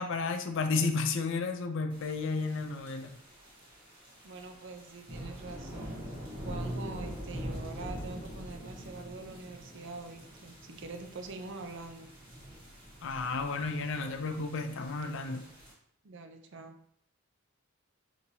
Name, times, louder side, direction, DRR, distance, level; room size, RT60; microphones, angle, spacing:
voice 1, 0.0-3.1 13.0-15.4, left 4 dB, 55° left, 7 dB, 0.4 m, -32 dB
sound 1, 1.9-15.7, equal, 20° right, 1.2 m, -44 dB
voice 2, 4.2-6.1 6.4-12.1 16.0-16.8, right 3 dB, 55° right, 5 dB, 0.5 m, -44 dB
5.4 x 2.9 x 2.7 m, 0.69 s
head